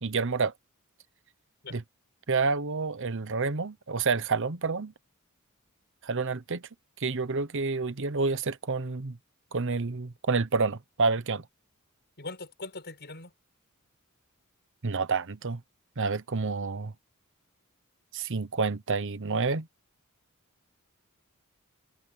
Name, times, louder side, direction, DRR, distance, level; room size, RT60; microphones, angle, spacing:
voice 1, 0.0-0.5 1.7-1.8 2.3-4.9 6.0-6.6 7.0-9.2 9.5-11.4 14.8-15.6 16.0-16.9 18.1-19.7, right 4 dB, 60° right, 1.0 m, -29 dB
voice 2, 12.2-13.3, left 3 dB, 50° left, 5.3 m, -41 dB
head